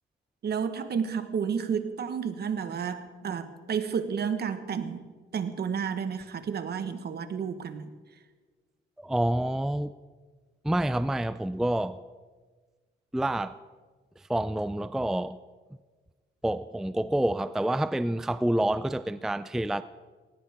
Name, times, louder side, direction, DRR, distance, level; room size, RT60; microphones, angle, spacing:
voice 1, 0.4-5.1 5.3-7.9, right 7 dB, 55° right, 1.4 m, -31 dB
voice 2, 9.0-9.9 10.6-12.0 13.1-13.6 14.2-15.4 16.4-19.8, right 1 dB, ahead, 0.4 m, -28 dB
19.0 x 19.0 x 3.6 m
cardioid pair, 90°, 20 cm